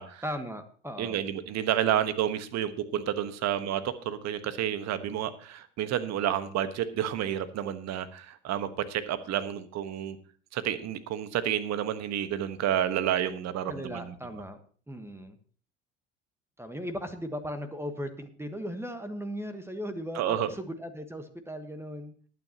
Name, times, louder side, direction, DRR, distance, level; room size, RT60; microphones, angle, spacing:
voice 1, 0.2-1.2 13.7-14.6 14.9-15.4 16.6-22.1, equal, 5° right, 8 dB, 1.4 m, -37 dB
voice 2, 1.0-10.2 10.5-14.1 20.1-20.5, right 10 dB, 45° right, 12 dB, 1.3 m, -30 dB
19.5 x 9.4 x 2.9 m, 0.43 s
figure-of-eight pair, 65°, 36 cm